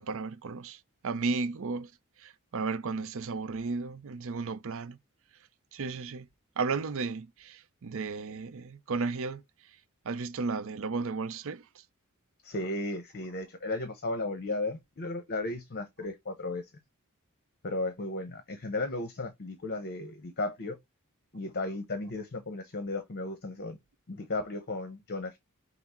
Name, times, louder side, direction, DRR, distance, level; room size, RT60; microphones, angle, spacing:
voice 1, 0.0-1.9 2.2-5.0 5.7-6.3 6.6-9.4 10.0-11.6, right 4 dB, 60° right, 0.5 m, -34 dB
voice 2, 12.4-16.6 17.6-20.8 21.3-23.8 24.1-25.4, left 2 dB, 50° left, 0.8 m, -35 dB
5.8 x 2.0 x 4.2 m
head